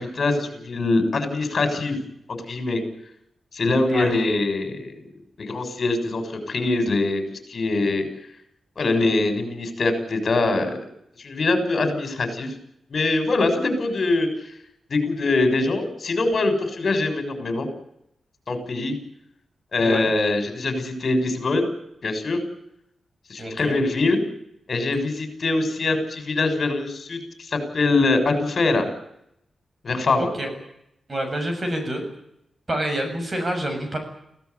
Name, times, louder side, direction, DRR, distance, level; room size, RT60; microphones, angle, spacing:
voice 1, 0.0-2.0 2.3-2.8 3.5-4.9 5.4-8.0 8.8-10.8 11.2-12.5 12.9-14.3 14.9-17.7 18.5-18.9 19.7-21.7 22.0-22.4 23.3-24.2 24.7-28.9 29.8-30.3, left 3 dB, 45° left, 7 dB, 6.7 m, -23 dB
voice 2, 19.8-20.1 23.4-23.8 30.2-30.5 31.1-32.0 32.7-34.0, right 1 dB, 30° right, 5 dB, 7.1 m, -27 dB
25.0 x 17.0 x 9.8 m, 0.77 s
wide cardioid pair, 145°, 0 cm